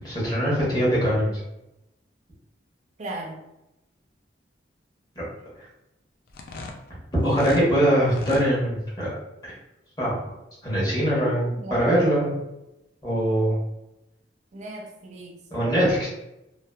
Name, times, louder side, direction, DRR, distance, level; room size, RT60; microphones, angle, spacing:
voice 1, 0.0-1.4 5.2-5.3 7.2-9.2 9.4-9.5 10.0-10.1 10.6-12.3 13.0-13.6 15.5-16.1, equal, 20° left, -8 dB, 1.0 m, -22 dB
voice 2, 3.0-3.4 11.1-12.4 14.5-15.8, right 1 dB, 35° right, 1 dB, 0.4 m, -37 dB
sound 1, 6.3-7.7 8.0-8.5, left 3 dB, 50° left, 0.3 m, -37 dB
2.8 x 2.1 x 2.2 m, 0.89 s
head